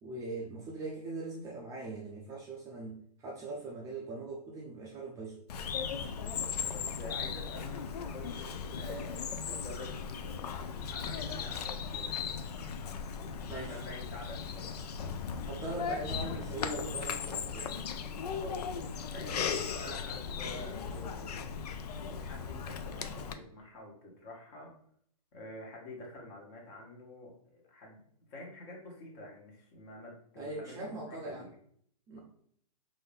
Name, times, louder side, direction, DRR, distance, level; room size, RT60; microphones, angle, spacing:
voice 1, 0.0-5.4 13.5-13.8 15.4-17.7 30.4-31.5 32.1-32.2, right 3 dB, 15° right, -3 dB, 0.5 m, -41 dB
Bird vocalization bird call bird song, 5.5-23.3, left 6 dB, 75° left, 0.5 m, -37 dB
voice 2, 6.1-10.5 10.8-12.3 13.5-14.7 18.4-21.5 21.9-24.7 25.3-28.0 28.3-31.5, left 1 dB, 35° left, -1 dB, 1.3 m, -47 dB
3.9 x 2.7 x 3.4 m, 0.64 s
hypercardioid pair, 145°, 20 cm